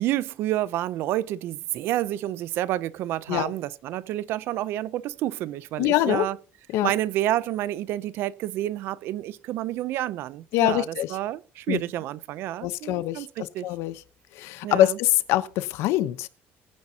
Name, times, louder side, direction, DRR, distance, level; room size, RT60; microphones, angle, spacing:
voice 1, 0.0-6.4 6.8-13.7 14.6-15.0, right 14 dB, 60° right, 0.6 m, -29 dB
voice 2, 5.8-6.3 6.7-6.9 10.5-11.1 11.7-11.8 12.6-13.3 13.6-14.0 14.3-16.3, left 14 dB, 75° left, 0.9 m, -24 dB
22.0 x 9.7 x 2.8 m
cardioid pair, 170°, 4 cm